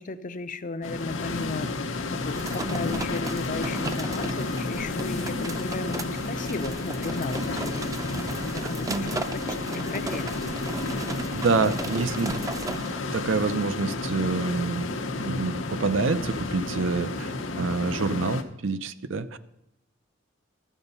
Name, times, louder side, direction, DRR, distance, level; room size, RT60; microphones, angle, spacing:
voice 1, 0.0-1.7 2.1-8.0 8.3-9.2 9.7-10.3, left 3 dB, 45° left, 12 dB, 0.6 m, -35 dB
sound 1, 0.8-18.4, left 3 dB, 80° left, 0.9 m, -31 dB
sound 2, 2.2-13.0, right 2 dB, 20° right, 0.5 m, -37 dB
voice 2, 8.6-9.1 11.3-12.8 13.1-19.4, right 4 dB, 75° right, 12 dB, 0.6 m, -27 dB
12.0 x 7.9 x 5.5 m, 0.88 s
head